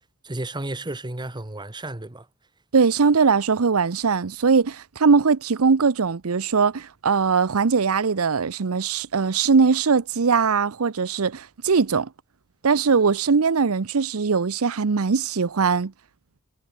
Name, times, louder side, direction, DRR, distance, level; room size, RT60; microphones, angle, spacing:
voice 1, 0.2-2.3, right 2 dB, 20° right, 1.3 m, -32 dB
voice 2, 2.7-12.1 12.6-15.9, right 5 dB, 70° right, 0.7 m, -20 dB
head